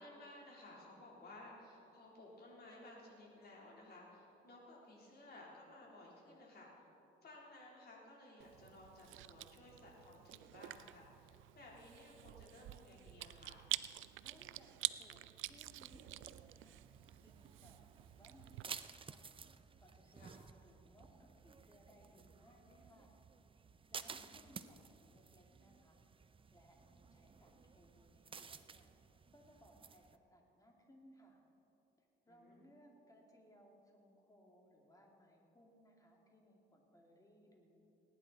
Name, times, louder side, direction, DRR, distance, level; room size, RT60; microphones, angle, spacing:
voice 1, 0.0-6.9 7.2-13.6 20.2-20.4 24.1-24.4 32.3-32.7, left 1 dB, 55° left, -3 dB, 3.7 m, -57 dB
Chewing mastication, 8.4-18.6, right 16 dB, 80° right, 0.4 m, -47 dB
voice 2, 14.0-16.8 17.2-19.3 19.8-23.1 23.9-26.0 26.5-28.9 29.3-30.0 30.3-31.4 32.0-37.8, equal, 15° left, 0 dB, 2.5 m, -65 dB
sound 1, 15.5-30.2, right 5 dB, 25° right, 0.5 m, -55 dB
19.0 x 10.5 x 4.2 m, 2.9 s
cardioid pair, 90°, 20 cm